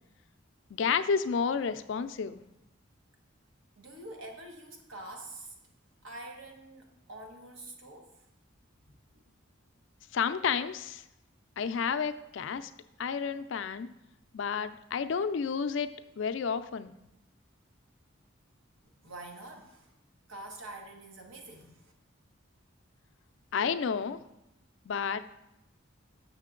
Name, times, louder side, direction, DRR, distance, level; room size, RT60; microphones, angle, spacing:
voice 1, 0.7-2.4 10.1-11.0 11.6-12.7 13.0-13.9 14.3-15.9 16.2-16.9 23.5-24.2 24.9-25.3, left 6 dB, 70° left, 11 dB, 0.4 m, -31 dB
voice 2, 3.8-5.5 6.0-8.2 19.0-19.9 20.3-21.9, right 2 dB, 80° right, 2 dB, 1.2 m, -46 dB
6.7 x 6.5 x 3.7 m, 0.87 s
head